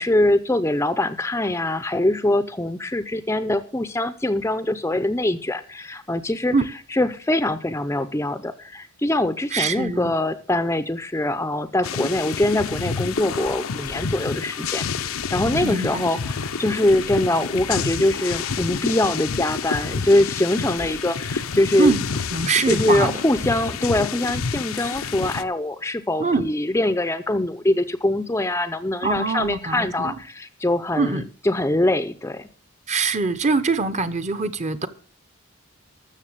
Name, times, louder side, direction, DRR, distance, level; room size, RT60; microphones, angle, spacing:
voice 1, 0.0-6.5 6.9-21.9 22.7-32.5, left 1 dB, 10° left, 0.5 m, -23 dB
voice 2, 9.5-10.1 15.6-16.1 21.8-22.0 22.3-23.2 26.2-26.5 29.0-30.1 31.0-31.3 32.9-34.9, right 4 dB, 30° right, 0.8 m, -23 dB
sound 1, 11.8-25.4, left 5 dB, 75° left, 0.7 m, -29 dB
13.0 x 6.9 x 7.3 m
head